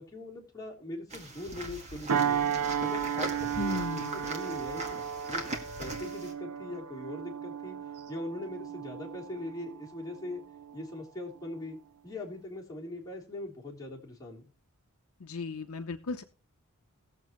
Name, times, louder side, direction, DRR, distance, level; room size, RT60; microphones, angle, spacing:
voice 1, 0.0-2.4 2.8-5.0 5.3-5.4 5.8-7.8 8.1-10.4 10.7-11.8 12.0-14.4, left 1 dB, 15° left, -4 dB, 3.4 m, -41 dB
sound 1, 1.1-6.3, right 2 dB, 30° right, 2.0 m, -40 dB
sound 2, 2.1-10.9 11.4-11.6, right 8 dB, 90° right, 0.7 m, -34 dB
voice 2, 3.6-4.3 15.2-16.2, left 3 dB, 75° left, 8 dB, 0.8 m, -36 dB
19.0 x 7.4 x 3.1 m, 0.37 s
head